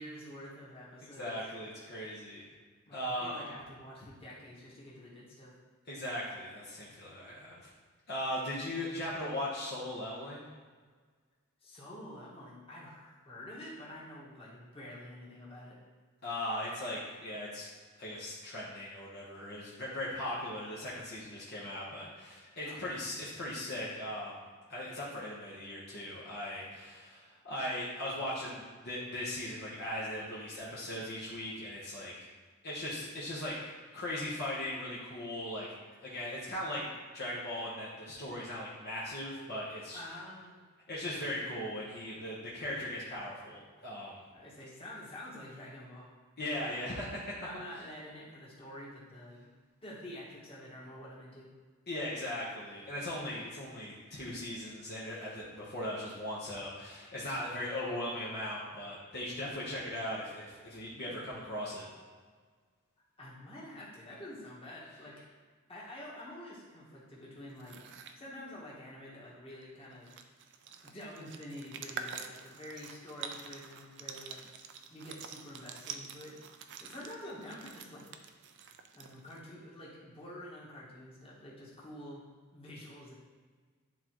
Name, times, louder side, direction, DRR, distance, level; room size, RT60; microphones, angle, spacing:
voice 1, 0.0-1.4 2.9-5.5 11.6-15.8 22.6-22.8 39.9-40.6 44.3-46.1 46.5-46.9 47.4-49.5 49.8-51.5 63.2-65.1 65.7-67.8 68.1-70.1 70.8-74.5 74.9-76.4 76.8-78.2 78.9-82.2 82.5-83.1, left 1 dB, 25° left, -7 dB, 1.7 m, -48 dB
voice 2, 1.1-2.5 2.9-3.5 5.9-7.7 8.1-10.4 16.2-17.7 18.0-32.1 32.6-33.6 33.9-35.7 36.0-40.0 40.9-44.2 46.4-47.5 51.9-61.9, left 1 dB, 50° left, -7 dB, 1.1 m, -38 dB
sound 1, 67.5-68.2 69.6-69.7 69.9-79.5, right 6 dB, 55° right, 0.5 m, -47 dB
10.5 x 3.8 x 3.1 m, 1.5 s
head